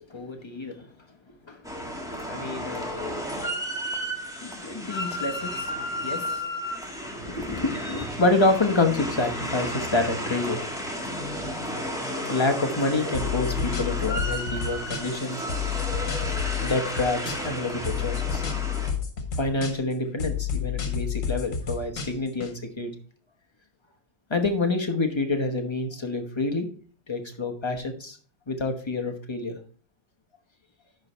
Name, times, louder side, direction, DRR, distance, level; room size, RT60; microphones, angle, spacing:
voice 1, 0.1-0.8 1.5-1.6 2.3-2.9 3.5-3.6 3.8-4.1 4.4-6.4 7.2-10.6 12.3-15.4 16.6-18.4 19.4-22.9 24.3-26.7 27.1-28.2 28.5-29.6, left 2 dB, 20° left, 4 dB, 1.1 m, -27 dB
sound 1, 1.6-18.9, equal, 5° right, 1.5 m, -33 dB
sound 2, 13.1-15.2 15.5-17.6 17.8-19.9 20.2-22.5, left 8 dB, 75° left, 1.6 m, -30 dB
10.5 x 4.9 x 4.3 m, 0.42 s
omnidirectional pair, 1.4 m